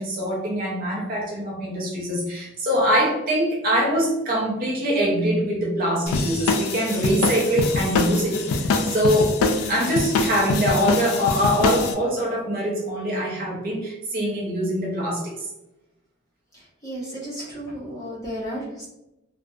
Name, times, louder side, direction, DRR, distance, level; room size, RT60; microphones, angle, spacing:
voice 1, 0.0-9.4 9.7-15.4, equal, 40° right, -3 dB, 0.6 m, -23 dB
sound 1, 6.1-11.9, left 3 dB, 85° left, 0.3 m, -24 dB
voice 2, 16.5-18.9, equal, 15° left, -7 dB, 0.7 m, -33 dB
2.4 x 2.1 x 2.6 m, 0.91 s
head